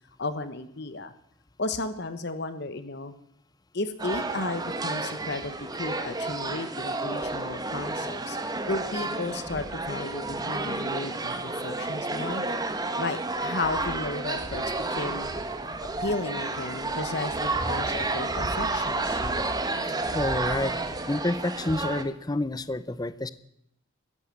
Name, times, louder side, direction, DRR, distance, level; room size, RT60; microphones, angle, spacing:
voice 1, 0.2-1.1 1.6-3.1 3.7-8.4 8.7-12.4 13.0-14.6 14.9-15.3 16.0-19.2, left 2 dB, 55° left, 11 dB, 1.1 m, -34 dB
sound 1, 4.0-22.0, right 3 dB, 20° right, 1.3 m, -31 dB
sound 2, 7.2-7.5 8.1-8.2 8.7-8.9 9.4-9.8 11.2-11.3 12.1-12.8 13.3-16.2 16.9-19.6 20.0-20.9 21.8-21.9, equal, 75° right, 5.3 m, -41 dB
voice 2, 20.1-20.7 21.1-23.3, left 2 dB, 20° left, 15 dB, 0.6 m, -28 dB
14.0 x 11.5 x 8.5 m, 0.75 s
head